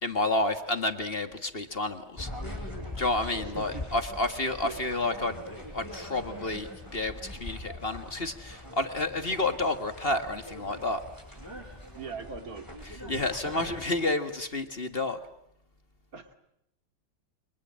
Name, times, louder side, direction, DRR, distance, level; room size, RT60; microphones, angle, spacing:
voice 1, 0.0-2.3 3.0-5.4 5.7-11.0 12.8-15.2, left 2 dB, 30° left, 8 dB, 1.6 m, -30 dB
sound 1, 2.2-14.0, left 1 dB, 10° left, 7.3 m, -42 dB
voice 2, 3.4-3.9 4.6-4.8 12.0-12.7 16.1-16.3, right 5 dB, 40° right, 6 dB, 2.8 m, -40 dB
30.0 x 24.5 x 7.6 m, 0.79 s
omnidirectional pair, 2.3 m